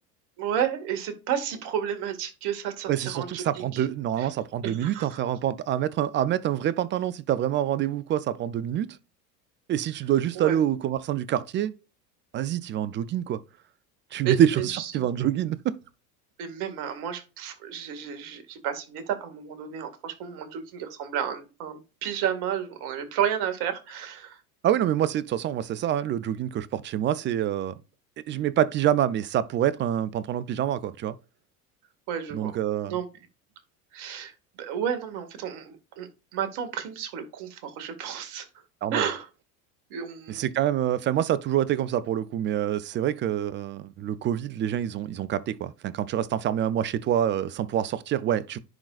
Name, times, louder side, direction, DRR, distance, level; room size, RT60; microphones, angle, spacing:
voice 1, 0.4-3.9 4.2-4.3 4.6-5.2 10.4-10.6 14.2-15.1 16.4-24.4 32.1-32.6 32.9-33.1 33.9-34.3 34.6-38.5 38.9-39.3 39.9-40.5, right 9 dB, 55° right, 2.0 m, -32 dB
voice 2, 2.9-9.0 9.7-11.7 12.3-13.4 14.1-15.7 24.6-27.7 28.3-31.1 32.3-32.9 38.8-39.0 40.3-48.6, right 11 dB, 25° right, 0.4 m, -26 dB
10.5 x 3.8 x 2.4 m
hypercardioid pair, 80°, 48 cm